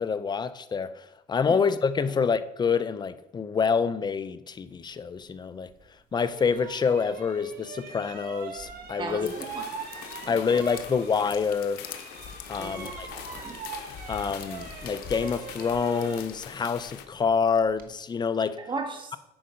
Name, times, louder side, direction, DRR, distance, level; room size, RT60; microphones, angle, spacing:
voice 1, 0.0-5.7 6.1-9.3 10.3-11.8 12.5-13.1 14.1-18.6, left 6 dB, 25° left, 0.5 m, -27 dB
sound 1, 5.7-5.8 6.3-11.5 11.7-17.9, right 6 dB, 55° right, 1.2 m, -42 dB
voice 2, 9.0-9.6 10.2-10.4 12.6-13.6 18.7-19.2, right 3 dB, 30° right, 1.5 m, -36 dB
sound 2, 9.1-16.5, left 8 dB, 60° left, 0.8 m, -45 dB
sound 3, 9.3-17.1, left 10 dB, 85° left, 0.8 m, -44 dB
8.7 x 5.1 x 5.1 m
cardioid pair, 110°, 17 cm